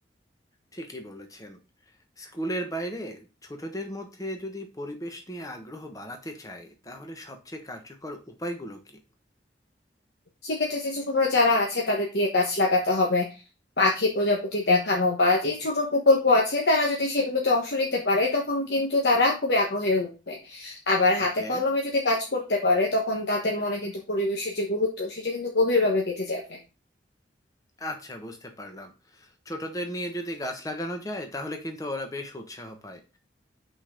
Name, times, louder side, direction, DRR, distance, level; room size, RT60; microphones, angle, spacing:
voice 1, 0.7-1.6 2.2-9.0 21.4-21.6 27.8-33.2, equal, 20° left, 5 dB, 1.1 m, -36 dB
voice 2, 10.4-13.2 13.8-26.6, left 2 dB, 65° left, -1 dB, 1.2 m, -24 dB
5.7 x 4.4 x 5.0 m, 0.30 s
head